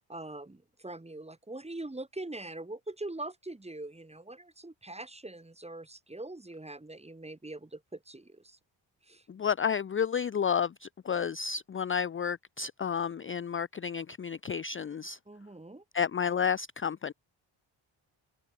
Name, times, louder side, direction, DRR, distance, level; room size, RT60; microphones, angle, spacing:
voice 1, 0.0-8.6 9.0-9.3 15.3-15.8, right 2 dB, 15° right, 1.8 m, -43 dB
voice 2, 9.3-15.2 15.9-17.1, left 7 dB, 30° left, 0.5 m, -31 dB
cardioid pair, 70°, 47 cm